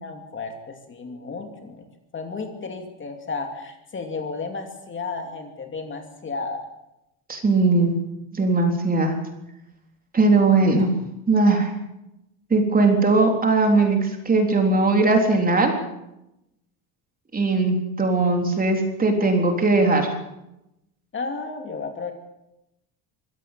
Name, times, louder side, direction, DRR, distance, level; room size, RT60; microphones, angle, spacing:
voice 1, 0.0-1.9 2.1-6.6 10.5-10.7 21.1-22.1, left 4 dB, 25° left, 5 dB, 2.7 m, -33 dB
voice 2, 7.3-7.9 8.3-9.2 10.1-10.9 11.3-11.7 12.5-15.7 17.3-20.1, right 3 dB, 20° right, 3 dB, 3.7 m, -19 dB
24.0 x 16.5 x 7.5 m, 0.89 s
cardioid pair, 150°, 43 cm